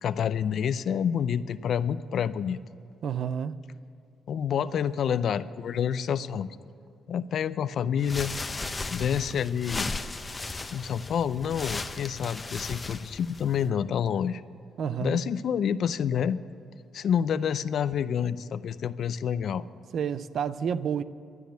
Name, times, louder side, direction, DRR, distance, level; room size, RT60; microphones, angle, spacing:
voice 1, 0.0-2.6 4.3-6.5 7.1-8.3 8.9-9.9 10.7-14.4 15.0-16.4 16.9-19.6, left 8 dB, 65° left, 15 dB, 0.5 m, -28 dB
voice 2, 3.0-3.6 14.8-15.2 19.9-21.0, right 8 dB, 60° right, 15 dB, 0.5 m, -29 dB
sound 1, 8.0-13.7, left 3 dB, 25° left, 0.8 m, -36 dB
12.5 x 10.0 x 8.0 m, 2.7 s
cardioid pair, 90°, 0 cm